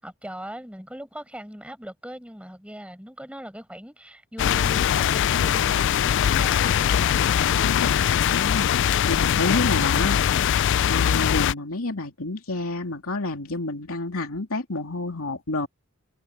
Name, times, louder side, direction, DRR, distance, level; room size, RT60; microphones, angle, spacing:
voice 1, 0.0-7.2, equal, 5° right, 7.1 m, -40 dB
sound 1, 4.4-11.5, left 9 dB, 55° left, 0.3 m, -21 dB
voice 2, 7.6-15.7, left 2 dB, 75° left, 3.0 m, -30 dB
head